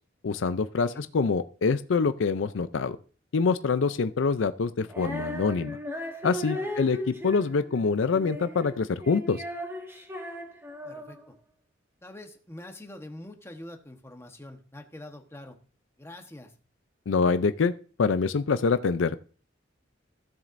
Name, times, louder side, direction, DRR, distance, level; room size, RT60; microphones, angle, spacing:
voice 1, 0.2-3.0 3.3-5.8 6.2-9.4 17.1-17.7 18.0-19.2, left 4 dB, 80° left, 12 dB, 0.5 m, -25 dB
Female singing, 4.9-11.3, equal, 15° right, 1.8 m, -37 dB
voice 2, 10.8-11.4 12.0-15.6 16.0-16.5, left 1 dB, 15° left, 4 dB, 1.1 m, -45 dB
16.0 x 7.3 x 2.6 m, 0.40 s
head